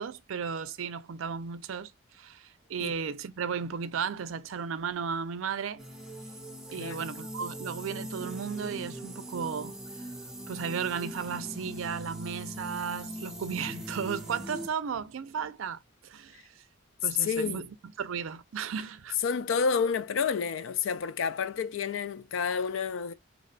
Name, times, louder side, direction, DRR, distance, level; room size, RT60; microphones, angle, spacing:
voice 1, 0.0-5.8 6.7-9.8 10.5-16.4 17.0-17.7 18.0-19.2, right 6 dB, 75° right, 0.4 m, -35 dB
sound 1, 5.8-14.7, equal, 5° right, 0.6 m, -41 dB
voice 2, 6.8-7.1 17.2-17.7 19.2-23.1, left 6 dB, 70° left, 0.3 m, -29 dB
3.0 x 2.2 x 3.8 m
head